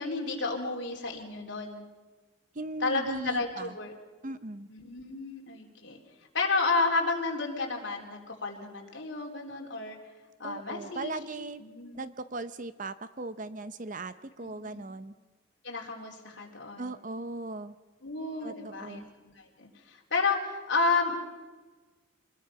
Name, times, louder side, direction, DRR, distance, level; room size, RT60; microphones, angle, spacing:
voice 1, 0.0-1.9 2.8-3.9 4.7-6.0 6.3-10.0 10.4-11.1 11.6-12.0 14.4-14.8 15.6-16.9 18.0-19.0 19.4-21.2, left 3 dB, 55° left, 0 dB, 3.9 m, -31 dB
voice 2, 2.5-3.7 4.2-4.7 10.4-11.6 11.9-15.1 16.8-17.8 18.4-19.1, right 2 dB, 40° right, 13 dB, 0.7 m, -38 dB
26.5 x 21.0 x 5.9 m, 1.3 s
head